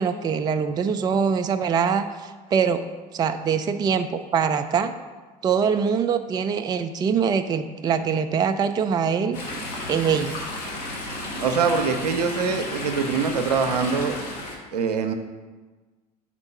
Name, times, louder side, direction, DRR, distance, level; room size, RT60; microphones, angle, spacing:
voice 1, 0.0-2.8 3.1-4.9 5.4-9.4 9.9-10.3, right 6 dB, 20° right, 9 dB, 0.3 m, -23 dB
Chatter / Stream, 9.3-14.5, left 1 dB, 70° left, 1.3 m, -33 dB
voice 2, 11.4-14.2 14.7-15.1, right 5 dB, 75° right, 7 dB, 0.6 m, -23 dB
4.4 x 4.4 x 5.5 m, 1.3 s
figure-of-eight pair, 60°, 21 cm